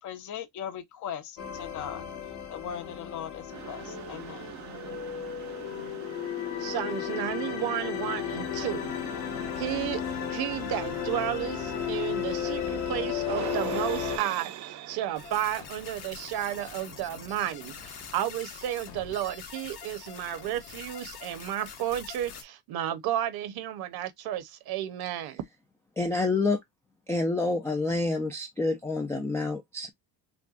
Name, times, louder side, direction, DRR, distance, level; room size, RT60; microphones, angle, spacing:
voice 1, 0.0-2.0 2.5-4.5, left 9 dB, 45° left, 0.6 m, -39 dB
sound 1, 1.4-14.2, left 9 dB, 75° left, 1.8 m, -34 dB
sound 2, 3.5-18.4, right 12 dB, 40° right, 0.6 m, -43 dB
voice 2, 6.6-8.9 9.6-10.0 10.3-25.4, right 12 dB, 55° right, 0.9 m, -32 dB
sound 3, 15.1-22.4, left 7 dB, 60° left, 1.4 m, -44 dB
voice 3, 26.0-26.6 27.1-29.9, left 3 dB, 5° left, 0.3 m, -28 dB
6.0 x 2.2 x 2.4 m
cardioid pair, 160°, 44 cm